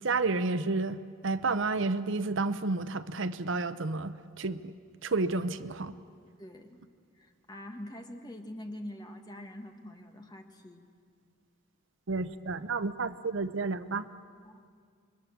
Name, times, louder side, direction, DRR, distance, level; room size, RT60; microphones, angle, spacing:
voice 1, 0.0-4.7 5.0-6.0 12.1-14.1, right 3 dB, 60° right, 13 dB, 0.7 m, -31 dB
voice 2, 6.4-6.8 7.2-10.8 14.4-14.6, left 1 dB, 20° left, 4 dB, 1.6 m, -44 dB
27.5 x 22.5 x 7.3 m, 2.1 s
head